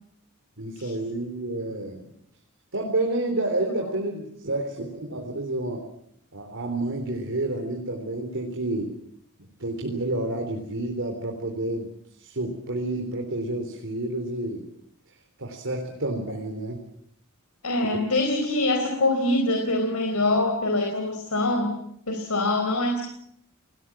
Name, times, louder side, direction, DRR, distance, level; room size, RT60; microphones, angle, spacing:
voice 1, 0.6-2.1 2.7-5.8 6.3-9.0 9.6-14.6 15.4-16.8, right 2 dB, 60° right, 2 dB, 3.8 m, -29 dB
voice 2, 17.6-21.8 22.1-23.0, left 2 dB, 75° left, 4 dB, 4.3 m, -24 dB
29.0 x 20.0 x 7.4 m, 0.71 s
head